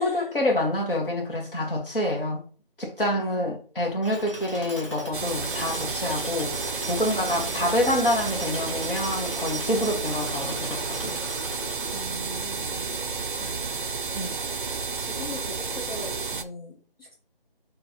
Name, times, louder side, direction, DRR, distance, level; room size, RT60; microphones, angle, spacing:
voice 1, 0.0-2.4 2.8-6.6 6.9-11.2 14.1-14.3, left 1 dB, 65° left, 1.7 m, -27 dB
voice 2, 3.2-3.6 7.1-7.7 11.9-13.9 15.0-17.1, equal, 85° left, 1.2 m, -42 dB
Tools, 4.0-12.3, right 1 dB, 30° left, 1.1 m, -38 dB
sound 1, 5.1-16.4, right 4 dB, 60° right, 0.4 m, -31 dB
4.3 x 3.2 x 3.0 m
figure-of-eight pair, 180°, 29 cm